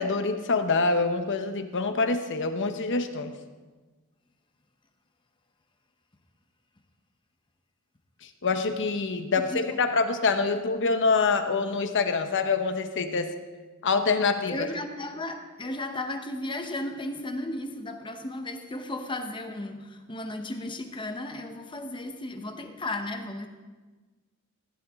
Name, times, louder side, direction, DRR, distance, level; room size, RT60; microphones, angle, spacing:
voice 1, 0.0-3.3 8.4-13.3 13.8-14.6, left 4 dB, 55° left, 8 dB, 0.9 m, -25 dB
voice 2, 9.3-9.7 14.5-23.5, left 1 dB, 20° left, 6 dB, 0.9 m, -35 dB
15.5 x 11.0 x 3.6 m, 1.3 s
head